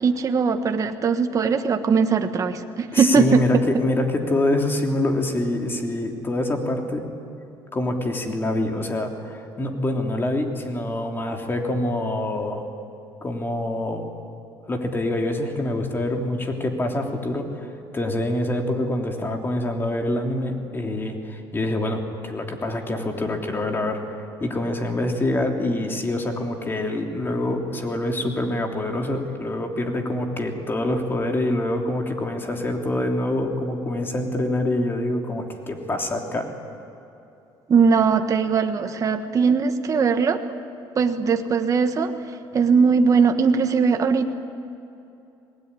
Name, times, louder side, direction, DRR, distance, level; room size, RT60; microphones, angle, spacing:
voice 1, 0.0-3.4 37.7-40.4 41.0-42.1 42.5-44.3, right 5 dB, 35° right, 6 dB, 1.4 m, -20 dB
voice 2, 2.9-7.0 7.7-12.7 13.2-14.1 14.7-24.0 24.4-36.5, left 1 dB, 25° left, 3 dB, 3.2 m, -25 dB
25.5 x 19.5 x 9.8 m, 2.8 s
cardioid pair, 115°, 9 cm